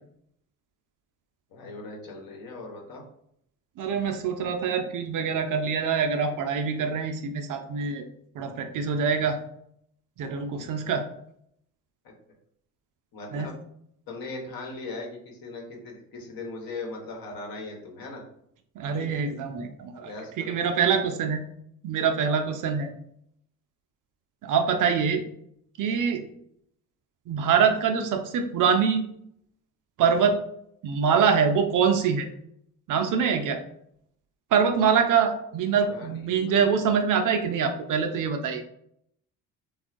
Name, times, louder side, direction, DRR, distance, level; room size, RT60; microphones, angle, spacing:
voice 1, 1.5-3.0 13.1-13.5 14.1-18.2 19.0-19.2 20.0-20.5 35.7-36.9, left 3 dB, 55° left, 0 dB, 1.1 m, -39 dB
voice 2, 3.8-8.0 8.3-9.4 10.2-11.1 13.3-13.5 18.8-21.4 21.8-22.9 24.4-25.2 25.8-26.3 27.3-29.0 30.0-30.4 30.8-32.3 32.9-33.6 34.5-38.6, right 6 dB, 45° right, 6 dB, 0.5 m, -24 dB
3.4 x 2.3 x 2.5 m, 0.71 s
hypercardioid pair, 55°, 44 cm